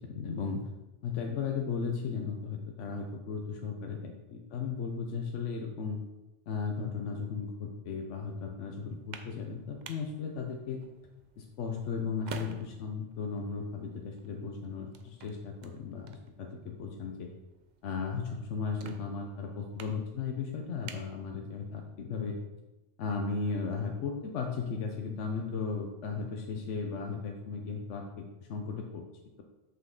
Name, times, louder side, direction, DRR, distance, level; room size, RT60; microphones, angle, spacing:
voice 1, 0.1-0.6 1.0-6.0 6.5-10.9 11.4-17.3 17.8-22.4 23.0-29.0, left 5 dB, 80° left, 2 dB, 1.0 m, -36 dB
sound 1, 8.8-21.9, right 5 dB, 55° right, 0.5 m, -51 dB
6.0 x 5.6 x 3.7 m, 1.0 s
omnidirectional pair, 1.2 m